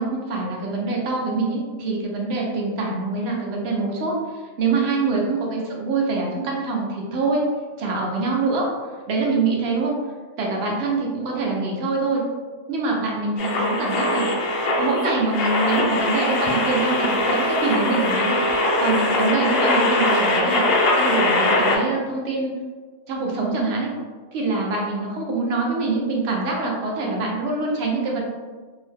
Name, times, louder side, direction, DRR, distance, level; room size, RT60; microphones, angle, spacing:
voice 1, 0.0-4.1 4.6-7.5 7.8-8.7 9.1-10.0 10.4-12.2 12.7-14.3 14.8-22.5 23.1-23.9 24.3-28.2, right 3 dB, 60° right, -2 dB, 0.9 m, -24 dB
sound 1, 13.4-21.8, left 2 dB, 60° left, 0.7 m, -21 dB
2.7 x 2.1 x 3.2 m, 1.4 s
omnidirectional pair, 1.3 m